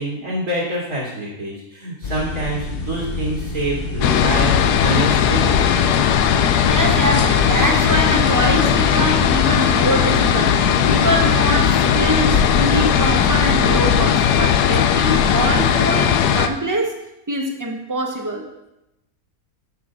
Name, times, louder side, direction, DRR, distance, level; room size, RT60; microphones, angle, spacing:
voice 1, 0.0-5.6, right 1 dB, 65° right, -5 dB, 2.7 m, -26 dB
sound 1, 2.0-14.4, left 4 dB, 50° left, 0.7 m, -28 dB
sound 2, 4.0-16.5, left 8 dB, 85° left, 1.1 m, -17 dB
voice 2, 6.7-17.0 17.3-18.5, right 1 dB, 15° right, 2 dB, 0.7 m, -24 dB
7.9 x 4.8 x 5.8 m, 0.89 s
omnidirectional pair, 1.6 m